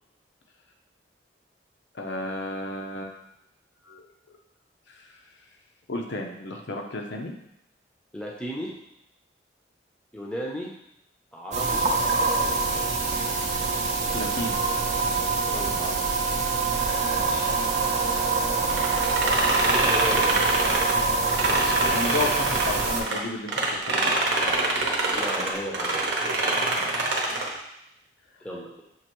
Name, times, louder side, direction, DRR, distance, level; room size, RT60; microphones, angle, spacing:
voice 1, 1.9-3.2 3.8-4.1 4.9-5.2 5.9-7.3 14.1-14.6 17.1-17.5 21.5-24.2 26.7-27.1, left 2 dB, 75° left, 1 dB, 0.6 m, -33 dB
voice 2, 8.1-8.7 10.1-10.7 11.3-11.9 12.2-12.6 15.4-16.0 19.3-20.5 25.0-26.0 28.4-28.8, equal, 5° left, -3 dB, 0.6 m, -35 dB
sound 1, 11.5-23.0, right 3 dB, 40° right, 0.5 m, -25 dB
sound 2, 18.7-23.2 23.5-27.6, right 2 dB, 70° right, 0.8 m, -26 dB
6.3 x 2.5 x 3.0 m, 0.80 s
head